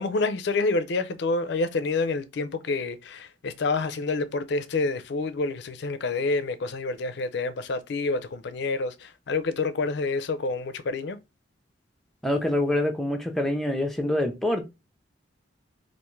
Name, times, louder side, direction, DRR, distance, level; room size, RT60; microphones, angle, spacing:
voice 1, 0.0-11.2, left 3 dB, 60° left, 0.4 m, -28 dB
voice 2, 12.2-14.6, left 1 dB, ahead, 0.5 m, -25 dB
3.5 x 2.5 x 3.0 m
head